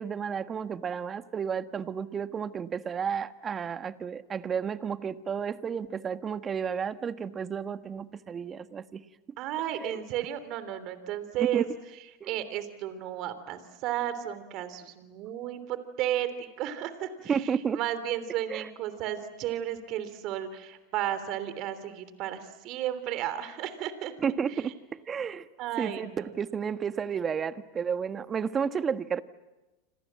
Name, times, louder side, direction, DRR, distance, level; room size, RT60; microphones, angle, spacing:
voice 1, 0.0-9.0 9.8-10.0 11.4-11.7 12.2-12.3 17.3-17.8 18.5-18.7 24.2-24.7 25.1-25.4 25.8-29.2, right 7 dB, 25° right, 11 dB, 1.4 m, -32 dB
voice 2, 9.4-11.6 12.3-17.4 17.7-24.1 25.6-26.3, right 11 dB, 50° right, 12 dB, 3.3 m, -33 dB
29.0 x 26.5 x 7.6 m, 1.1 s
hypercardioid pair, 105°, 0 cm